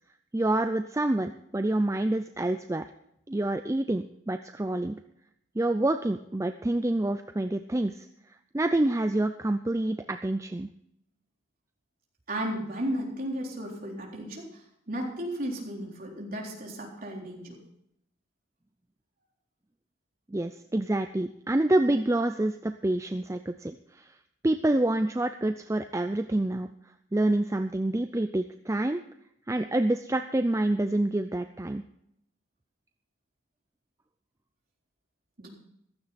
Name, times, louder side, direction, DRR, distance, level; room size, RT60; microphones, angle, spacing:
voice 1, 0.3-2.8 3.3-5.0 5.6-8.1 8.5-10.7 20.3-24.1 24.4-26.7 27.1-29.0 29.5-31.8, right 1 dB, 15° right, 8 dB, 0.4 m, -27 dB
voice 2, 12.3-17.6 35.4-35.5, right 1 dB, 45° right, -1 dB, 3.9 m, -34 dB
15.0 x 12.5 x 4.2 m, 0.76 s
head